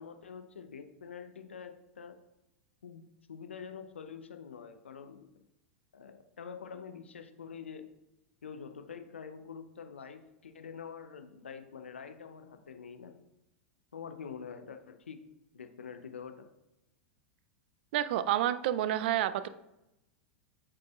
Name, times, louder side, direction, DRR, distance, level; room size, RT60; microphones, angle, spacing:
voice 1, 0.0-2.2 2.8-5.3 5.9-7.9 8.4-13.2 13.9-15.2 15.5-16.5, left 6 dB, 90° left, 8 dB, 0.6 m, -46 dB
voice 2, 17.9-19.5, right 12 dB, 60° right, 13 dB, 0.4 m, -29 dB
8.4 x 4.9 x 2.3 m, 0.90 s
hypercardioid pair, 100°, 6 cm